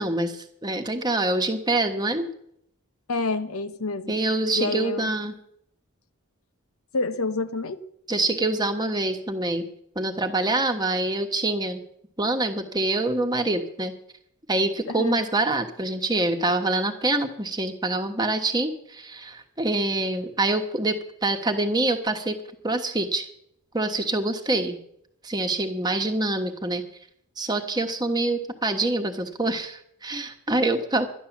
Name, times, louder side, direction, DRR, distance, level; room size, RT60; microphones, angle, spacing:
voice 1, 0.0-2.3 4.1-5.3 8.1-9.7 9.9-11.8 12.2-13.9 14.5-22.4 22.6-23.3 23.7-24.8 25.2-26.8 27.4-31.1, right 2 dB, 20° right, 5 dB, 1.2 m, -25 dB
voice 2, 3.1-4.1 4.6-5.1 6.9-7.8 14.9-15.2, left 3 dB, 75° left, 11 dB, 0.9 m, -28 dB
12.0 x 11.0 x 7.2 m, 0.72 s
head